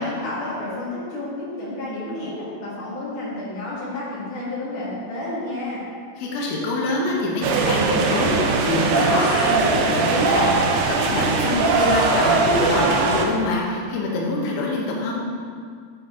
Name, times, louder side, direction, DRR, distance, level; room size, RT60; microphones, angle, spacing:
voice 1, 0.0-5.8, left 1 dB, 60° left, -7 dB, 3.2 m, -30 dB
voice 2, 6.2-15.2, left 2 dB, 75° left, -2 dB, 2.8 m, -25 dB
sound 1, 7.4-13.3, right 3 dB, 80° right, 2.7 m, -20 dB
11.0 x 5.3 x 3.7 m, 2.1 s
omnidirectional pair, 4.6 m